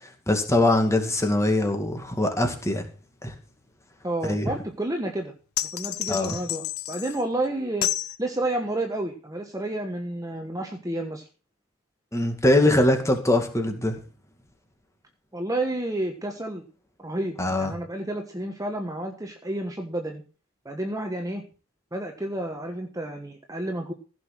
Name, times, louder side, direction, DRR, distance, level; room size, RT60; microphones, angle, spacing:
voice 1, 0.3-2.9 3.2-3.3 4.2-4.5 6.1-6.4 12.1-14.0 17.4-17.7, left 1 dB, 15° left, 5 dB, 2.3 m, -22 dB
voice 2, 4.0-5.3 5.7-7.9 8.2-11.3 15.3-16.6 17.0-20.2 20.6-21.4 21.9-23.9, right 1 dB, 15° right, 4 dB, 1.3 m, -30 dB
sound 1, 5.6-7.2 7.8-8.2, left 12 dB, 90° left, 1.1 m, -30 dB
15.5 x 6.1 x 6.1 m, 0.36 s
head